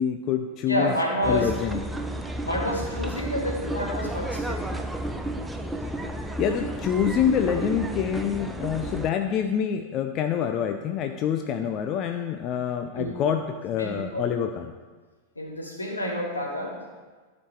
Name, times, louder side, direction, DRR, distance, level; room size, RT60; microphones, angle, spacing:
voice 1, 0.0-0.9 1.2-1.8 6.4-14.7, left 8 dB, 35° left, 7 dB, 0.5 m, -26 dB
voice 2, 0.7-1.5 2.5-4.6 13.0-13.2 13.8-14.2 15.4-16.7, equal, 80° left, -3 dB, 2.5 m, -28 dB
sound 1, 1.2-9.1, right 1 dB, 5° right, 0.7 m, -32 dB
14.0 x 5.2 x 4.6 m, 1.4 s
figure-of-eight pair, 90°, 0 cm